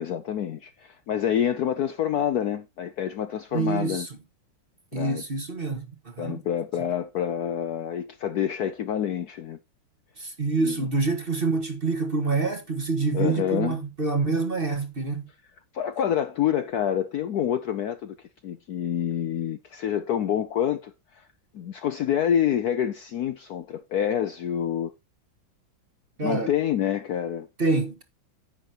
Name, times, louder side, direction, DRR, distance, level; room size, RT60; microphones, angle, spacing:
voice 1, 0.0-4.1 4.9-5.2 6.2-9.6 10.6-10.9 13.1-13.8 15.7-18.2 18.4-21.2 21.5-24.9 26.2-27.5, left 9 dB, 65° left, 1.0 m, -27 dB
voice 2, 3.5-4.1 4.9-6.4 10.2-15.2 26.2-26.5 27.6-28.0, right 3 dB, 30° right, 1.5 m, -26 dB
10.5 x 8.3 x 2.9 m
omnidirectional pair, 2.2 m